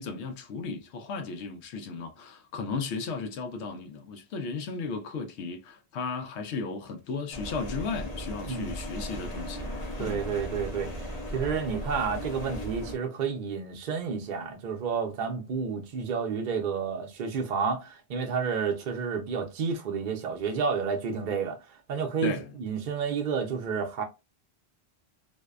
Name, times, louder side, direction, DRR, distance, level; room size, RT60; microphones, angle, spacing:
voice 1, 0.0-9.7 10.0-10.2 22.2-22.5, left 4 dB, 85° left, 0.9 m, -35 dB
sound 1, 7.3-13.0, left 1 dB, 45° left, 0.7 m, -36 dB
voice 2, 10.0-24.0, right 6 dB, 55° right, 0.6 m, -30 dB
2.6 x 2.1 x 2.3 m
omnidirectional pair, 1.1 m